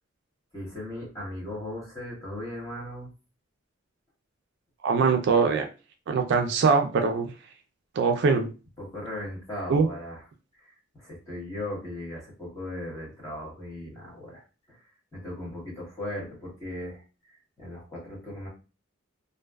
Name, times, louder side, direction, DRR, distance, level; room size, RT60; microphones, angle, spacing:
voice 1, 0.5-3.1 8.8-10.2 10.5-18.5, left 1 dB, 15° left, -5 dB, 1.1 m, -38 dB
voice 2, 4.8-5.7 6.1-7.3 8.0-8.5 9.7-9.9, right 5 dB, 60° right, 5 dB, 0.3 m, -22 dB
2.5 x 2.2 x 2.2 m, 0.33 s
head